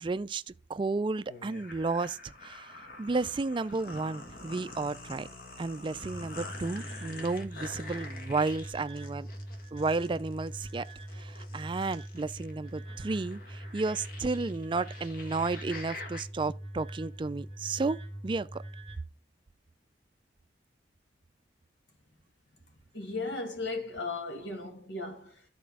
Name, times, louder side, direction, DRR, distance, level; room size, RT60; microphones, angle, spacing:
voice 1, 0.0-5.3 5.6-9.3 9.7-10.9 11.1-18.0 18.2-18.6, right 3 dB, 25° right, 0.3 m, -32 dB
sound 1, 1.3-16.2, left 2 dB, 50° left, 1.5 m, -47 dB
sound 2, 6.0-19.0, right 1 dB, 30° left, 2.6 m, -43 dB
voice 2, 22.7-25.4, left 3 dB, 80° left, 2.2 m, -36 dB
11.5 x 4.3 x 4.8 m
head